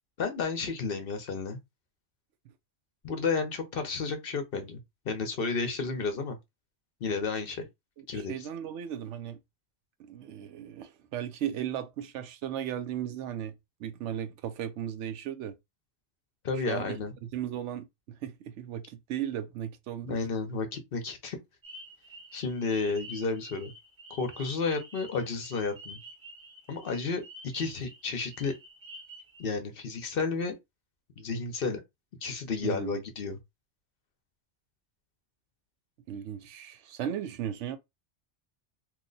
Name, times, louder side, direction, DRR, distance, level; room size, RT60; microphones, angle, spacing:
voice 1, 0.2-1.6 3.0-4.8 5.0-6.4 7.0-7.6 8.1-8.5 16.4-17.1 20.0-21.4 22.3-23.7 24.1-26.0 26.7-27.2 27.5-28.5 29.4-30.6 31.2-31.8 32.2-33.4, left 4 dB, 55° left, 0.8 m, -32 dB
voice 2, 8.0-9.4 10.0-15.6 16.5-20.2 32.6-33.0 36.1-37.8, right 10 dB, 80° right, 0.9 m, -36 dB
sound 1, 21.6-29.5, right 1 dB, 30° right, 0.7 m, -49 dB
2.9 x 2.1 x 3.8 m
omnidirectional pair, 1.2 m